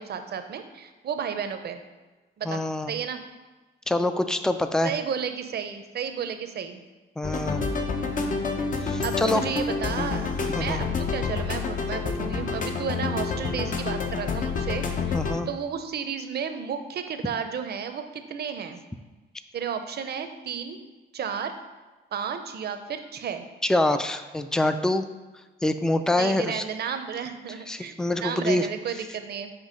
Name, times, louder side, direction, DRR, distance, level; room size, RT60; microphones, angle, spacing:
voice 1, 0.0-1.8 2.4-2.6 2.9-3.2 4.8-6.8 9.0-10.3 10.5-15.2 15.5-18.8 19.5-20.8 21.1-21.5 22.1-23.5 26.1-29.5, right 7 dB, 55° right, 8 dB, 0.6 m, -32 dB
voice 2, 2.4-2.9 3.9-4.9 7.2-7.7 8.8-9.4 10.6-10.8 15.1-15.5 23.6-25.1 25.6-26.6 27.7-28.7, left 1 dB, 5° left, 9 dB, 0.3 m, -25 dB
sound 1, 7.2-15.4, left 4 dB, 40° left, 0.7 m, -28 dB
7.5 x 2.9 x 5.1 m, 1.3 s
cardioid pair, 90°, 20 cm